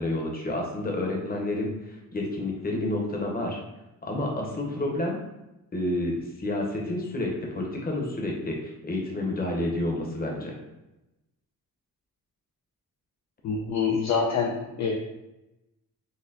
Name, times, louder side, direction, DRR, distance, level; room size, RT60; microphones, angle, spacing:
voice 1, 0.0-3.6 4.0-5.2 5.7-10.5, left 1 dB, 25° left, -1 dB, 0.9 m, -29 dB
voice 2, 13.4-15.0, left 5 dB, 50° left, 1 dB, 0.4 m, -26 dB
4.1 x 2.1 x 2.7 m, 0.95 s
cardioid pair, 100°, 35 cm